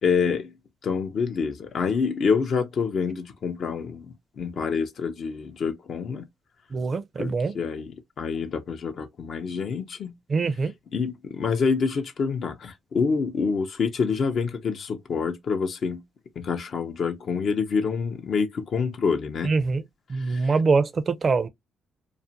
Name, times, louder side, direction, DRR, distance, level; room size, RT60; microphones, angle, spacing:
voice 1, 0.0-0.5 0.8-4.1 4.4-6.3 7.2-10.1 10.9-16.0 16.4-19.5 20.2-20.5, left 5 dB, 55° left, 0.5 m, -27 dB
voice 2, 6.7-7.5 10.3-10.7 19.4-19.8 20.1-21.5, right 4 dB, 40° right, 0.4 m, -23 dB
2.4 x 2.1 x 2.7 m
cardioid pair, 90°, 0 cm